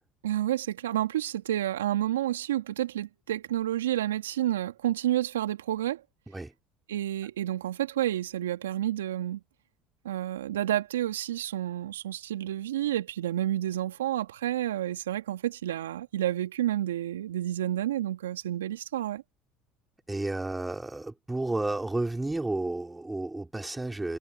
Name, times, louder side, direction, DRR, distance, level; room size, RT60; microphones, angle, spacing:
voice 1, 0.2-6.0 6.9-9.4 10.0-19.2, right 12 dB, 80° right, 1.9 m, -30 dB
voice 2, 20.1-24.2, right 2 dB, 10° right, 3.5 m, -31 dB
hypercardioid pair, 70°, 0 cm